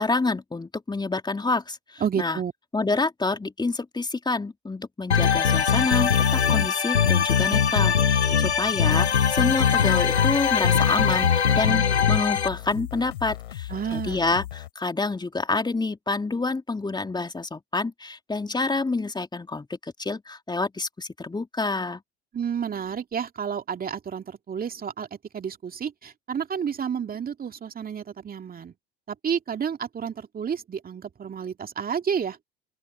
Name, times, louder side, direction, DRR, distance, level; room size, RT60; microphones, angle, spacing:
voice 1, 0.0-2.4 2.7-22.0, left 3 dB, 15° left, 3.4 m, -28 dB
voice 2, 2.0-2.5 13.7-14.2 22.3-25.1 25.3-28.7 29.1-32.4, right 7 dB, 25° right, 2.4 m, -30 dB
sound 1, 5.1-12.5, left 7 dB, 85° left, 0.8 m, -21 dB
sound 2, 8.3-14.7, left 13 dB, 70° left, 3.8 m, -37 dB
open air
figure-of-eight pair, 65°, 32 cm